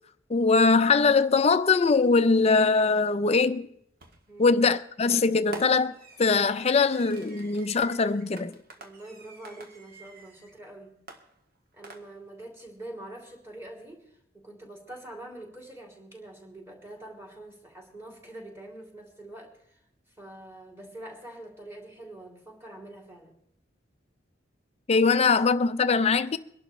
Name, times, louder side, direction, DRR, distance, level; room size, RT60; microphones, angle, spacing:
voice 1, 0.3-3.7 4.4-5.9 6.2-8.6 24.9-26.4, left 4 dB, 35° left, 0.5 m, -22 dB
Fireworks, 4.0-4.4 5.5-10.6 11.1-12.4, right 2 dB, 50° right, 1.6 m, -47 dB
voice 2, 4.3-4.6 8.8-11.0 11.7-19.8 20.1-23.4, right 1 dB, 15° right, 3.0 m, -45 dB
23.0 x 11.5 x 3.2 m
head